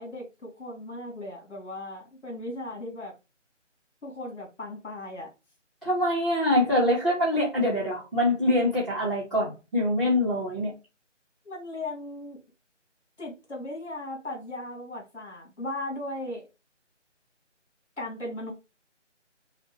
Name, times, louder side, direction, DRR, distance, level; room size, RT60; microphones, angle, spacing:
voice 1, 0.0-3.1 4.0-5.3 11.4-12.4 13.2-16.4 18.0-18.5, left 1 dB, 65° left, 2.6 m, -37 dB
voice 2, 5.8-10.7, left 1 dB, ahead, 0.7 m, -24 dB
5.7 x 2.0 x 3.1 m
figure-of-eight pair, 165°, 37 cm